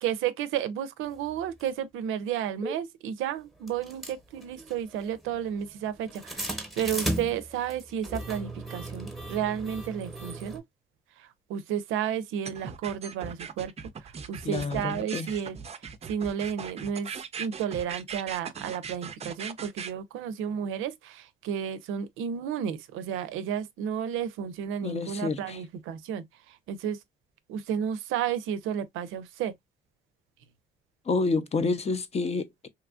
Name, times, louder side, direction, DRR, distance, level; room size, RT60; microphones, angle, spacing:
voice 1, 0.0-10.6 11.2-13.7 14.0-27.0 27.5-29.5, right 9 dB, 90° right, 0.4 m, -32 dB
sound 1, 1.6-1.7 2.6-2.7 3.7-10.6, right 1 dB, ahead, 0.8 m, -36 dB
sound 2, 12.4-19.9, right 6 dB, 30° right, 0.4 m, -39 dB
voice 2, 14.4-15.3 24.8-25.6 31.0-32.7, left 4 dB, 30° left, 0.5 m, -29 dB
2.8 x 2.4 x 2.3 m
cardioid pair, 90°, 20 cm